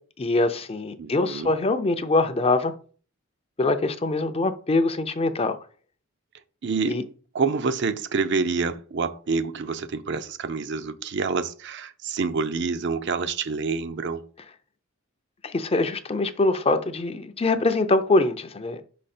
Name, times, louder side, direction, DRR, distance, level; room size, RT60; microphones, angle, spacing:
voice 1, 0.2-2.7 3.6-5.6 6.9-7.0 15.4-18.8, left 2 dB, 25° left, 0.5 m, -23 dB
voice 2, 1.0-1.5 6.6-7.0 7.3-14.2, right 4 dB, 55° right, 0.5 m, -27 dB
5.7 x 5.0 x 4.3 m
head